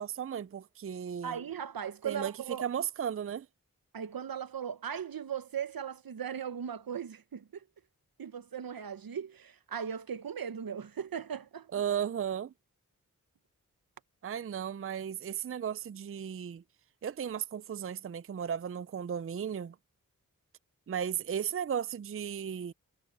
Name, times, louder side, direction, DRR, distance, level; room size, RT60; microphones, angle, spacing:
voice 1, 0.0-1.4 2.0-2.3 2.6-3.5 11.7-12.5 14.2-16.6 17.0-19.8 20.9-22.7, right 8 dB, 40° right, 0.4 m, -35 dB
voice 2, 1.2-2.6 3.9-7.6 8.2-11.7, right 8 dB, 85° right, 0.9 m, -38 dB
cardioid pair, 45°, 34 cm